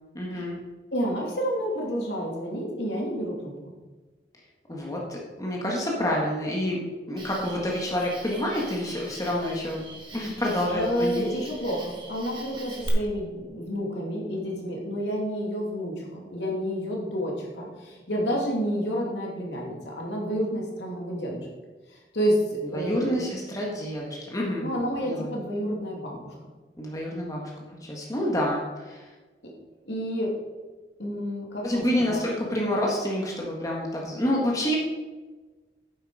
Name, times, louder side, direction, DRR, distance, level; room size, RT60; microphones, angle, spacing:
voice 1, 0.1-0.6 4.7-6.8 7.1-9.8 10.1-11.2 22.7-24.7 25.0-25.3 26.8-27.5 27.8-29.0 31.6-34.8, left 1 dB, 20° left, -2 dB, 1.7 m, -28 dB
voice 2, 0.9-3.7 10.6-21.5 22.1-23.2 24.6-26.3 29.4-29.5 29.8-30.3 31.0-32.3, equal, 75° left, -2 dB, 2.8 m, -29 dB
Cricket, 7.2-12.9, right 2 dB, 25° right, 1.8 m, -44 dB
9.4 x 8.0 x 5.0 m, 1.3 s
head